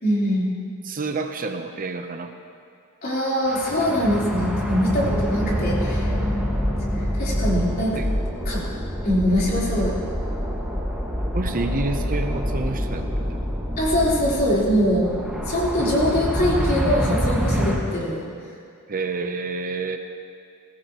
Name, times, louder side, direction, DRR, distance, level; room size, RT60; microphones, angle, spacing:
voice 1, 0.0-0.5 3.0-6.1 7.1-8.0 8.5-8.6 9.0-9.9 13.8-15.0 15.5-18.2, equal, 45° left, -6 dB, 3.7 m, -22 dB
voice 2, 0.9-2.3 5.4-5.6 8.0-8.1 11.3-13.4 18.9-20.0, right 3 dB, 40° right, 6 dB, 0.7 m, -29 dB
sound 1, 3.5-17.8, equal, 5° right, 1.6 m, -26 dB
20.5 x 16.0 x 3.0 m, 2.4 s
head